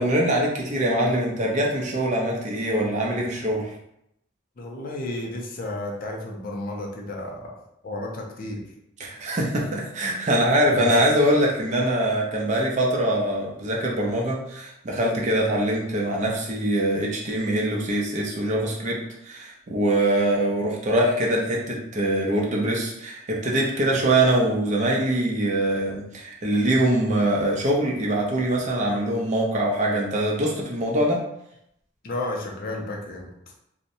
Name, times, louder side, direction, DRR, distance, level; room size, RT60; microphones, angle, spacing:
voice 1, 0.0-3.7 9.0-19.0 19.2-31.2, right 1 dB, 35° right, -2 dB, 0.5 m, -23 dB
voice 2, 4.6-8.7 10.7-10.9 32.0-33.3, left 2 dB, 45° left, 0 dB, 0.4 m, -32 dB
2.6 x 2.0 x 2.6 m, 0.79 s
head